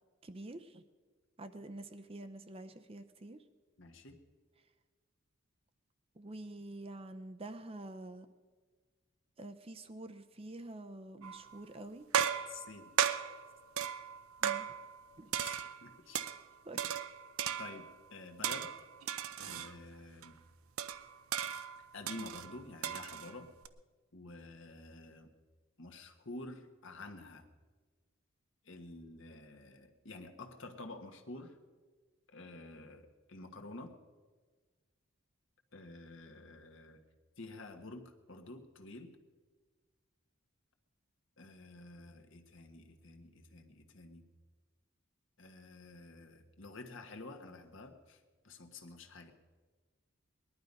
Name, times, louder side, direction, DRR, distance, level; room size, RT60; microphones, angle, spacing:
voice 1, 0.2-0.8 1.4-3.4 6.2-8.3 9.4-12.0 14.4-14.7 15.2-15.3 16.6-17.0, right 2 dB, 25° right, 8 dB, 0.6 m, -47 dB
voice 2, 3.8-4.2 12.5-12.9 15.4-16.2 17.6-18.7 19.4-20.4 21.9-23.5 24.1-25.3 25.8-27.5 28.6-31.6 32.3-34.0 35.7-37.0 37.4-39.2 41.4-44.2 45.4-49.3, left 2 dB, 60° left, 4 dB, 1.4 m, -49 dB
sound 1, 11.2-11.6 12.1-15.0 15.3-16.4 16.8-18.0 18.4-19.7 20.2-20.3 20.8-23.7, right 8 dB, 80° right, 0.6 m, -36 dB
20.0 x 11.5 x 5.4 m, 1.4 s
head